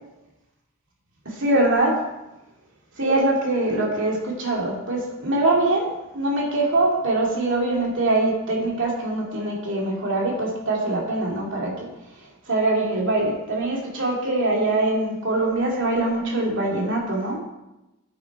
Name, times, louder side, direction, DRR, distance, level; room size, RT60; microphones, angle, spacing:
voice 1, 1.3-2.0 3.0-5.9 6.1-11.9 12.5-17.4, right 2 dB, 60° right, -1 dB, 2.5 m, -23 dB
9.1 x 8.5 x 4.8 m, 0.95 s
head